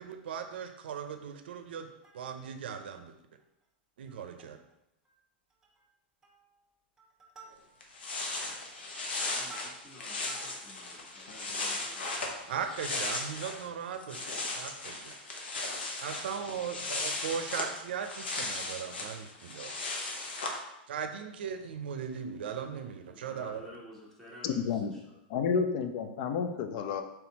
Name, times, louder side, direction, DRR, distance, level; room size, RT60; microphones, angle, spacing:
voice 1, 0.0-1.9 2.1-3.0 4.0-4.6 12.5-15.1 16.0-19.7 20.9-23.7, right 7 dB, 80° right, 7 dB, 0.5 m, -38 dB
Plucked string instrument, 1.8-2.6 3.1-3.2 3.4-3.6 4.1-4.7 5.0-5.2 5.5-5.9 6.2-6.6 7.0-8.0 8.5-12.7 13.2-13.3, right 3 dB, 10° right, 0.9 m, -54 dB
sound 1, 7.5-7.6 7.8-13.7 13.9-20.6, left 2 dB, 90° left, 0.9 m, -37 dB
voice 2, 9.2-12.5 23.1-25.1, left 1 dB, 10° left, -4 dB, 1.2 m, -52 dB
voice 3, 24.4-25.0 25.3-27.0, left 6 dB, 55° left, 7 dB, 0.5 m, -30 dB
4.3 x 3.7 x 2.8 m, 0.87 s
hypercardioid pair, 135°, 6 cm